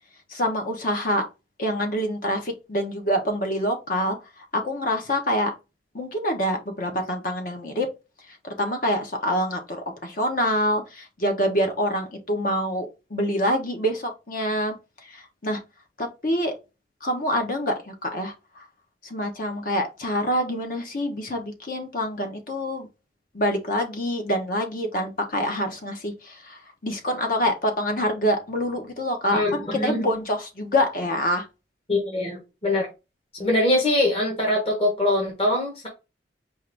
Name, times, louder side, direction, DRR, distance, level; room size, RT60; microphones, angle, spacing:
voice 1, 0.3-1.3 1.6-4.2 4.5-5.5 5.9-7.9 8.4-14.7 15.1-15.6 16.0-16.5 17.0-18.6 19.0-22.9 23.3-31.4, equal, 50° left, 1.0 m, -26 dB
voice 2, 29.3-30.0 31.9-32.9 33.4-35.9, left 1 dB, 35° left, 1.3 m, -23 dB
4.6 x 2.6 x 3.4 m
head